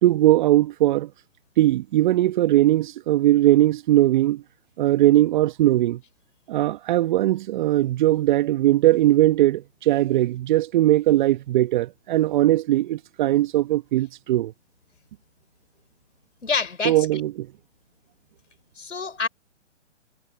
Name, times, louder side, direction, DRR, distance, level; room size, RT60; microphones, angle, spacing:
voice 1, 0.0-1.1 1.6-4.4 4.8-6.0 6.5-14.5 16.8-17.4, right 15 dB, 40° right, 1.1 m, -20 dB
voice 2, 16.4-17.1 18.8-19.3, left 4 dB, 80° left, 4.6 m, -27 dB
hypercardioid pair, 130°, 36 cm